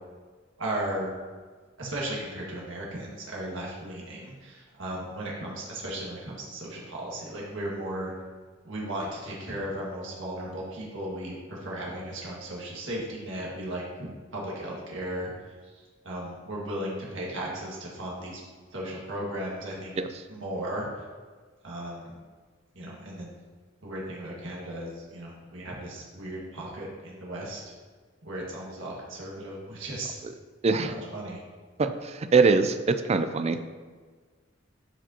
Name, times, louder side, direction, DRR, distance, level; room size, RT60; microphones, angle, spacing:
voice 1, 0.6-1.1 1.8-8.1 8.6-15.3 16.0-18.4 18.7-20.0 20.3-21.0 21.6-22.2 22.8-23.3 23.8-27.6 28.2-30.1 30.8-31.4, right 1 dB, 70° right, -4 dB, 1.8 m, -36 dB
voice 2, 31.8-33.6, right 4 dB, 35° right, 9 dB, 0.4 m, -23 dB
11.0 x 5.0 x 2.9 m, 1.5 s
head